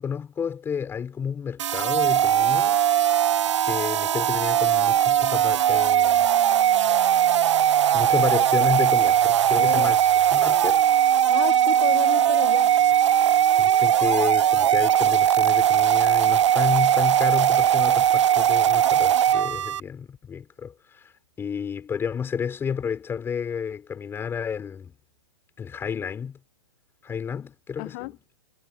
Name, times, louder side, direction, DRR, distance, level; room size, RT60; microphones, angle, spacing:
voice 1, 0.0-2.8 3.6-6.3 7.9-10.8 13.6-21.1 21.4-24.9 25.6-26.4 27.0-28.2, left 7 dB, 15° left, 5.6 m, -31 dB
sound 1, 1.6-19.8, right 10 dB, 75° right, 0.7 m, -20 dB
voice 2, 9.6-9.9 11.3-12.7 27.8-28.1, left 25 dB, 35° left, 1.0 m, -31 dB
hypercardioid pair, 140°, 15 cm